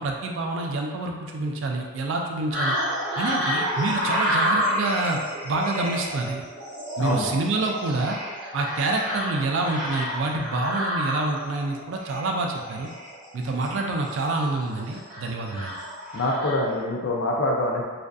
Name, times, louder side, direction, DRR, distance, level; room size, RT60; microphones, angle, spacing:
voice 1, 0.0-2.8 3.2-6.4 7.0-8.2 8.5-12.9 13.3-15.7, right 2 dB, 65° right, 1 dB, 0.3 m, -27 dB
sound 1, 2.5-16.8, equal, 40° right, 0.8 m, -30 dB
voice 2, 7.0-7.3 16.1-18.0, left 1 dB, 70° left, -1 dB, 0.4 m, -25 dB
2.5 x 2.4 x 2.2 m, 1.5 s
head